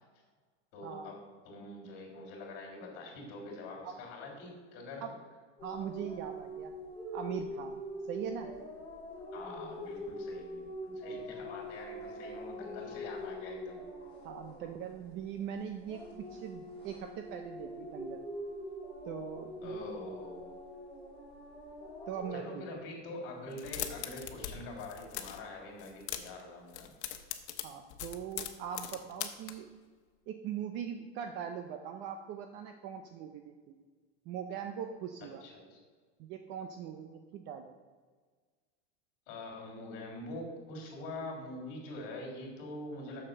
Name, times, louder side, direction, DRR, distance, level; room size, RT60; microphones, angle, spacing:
voice 1, 0.7-1.2 1.4-5.1 9.3-13.8 19.6-20.5 22.3-26.9 35.4-35.8 39.3-43.3, left 2 dB, 40° left, 0 dB, 3.3 m, -44 dB
sound 1, 5.6-15.4 15.7-22.3, equal, 15° left, 2.8 m, -43 dB
voice 2, 5.6-6.7 7.1-7.8 8.1-8.5 14.2-18.2 19.0-19.8 22.1-22.6 27.6-29.7 30.3-33.8 34.3-35.4 36.2-37.7, right 8 dB, 35° right, 6 dB, 0.6 m, -41 dB
sound 2, 23.5-24.5 24.8-25.4 25.8-26.4 26.7-29.5, left 12 dB, 80° left, 1.1 m, -40 dB
7.5 x 6.5 x 6.6 m, 1.5 s
supercardioid pair, 160°, 33 cm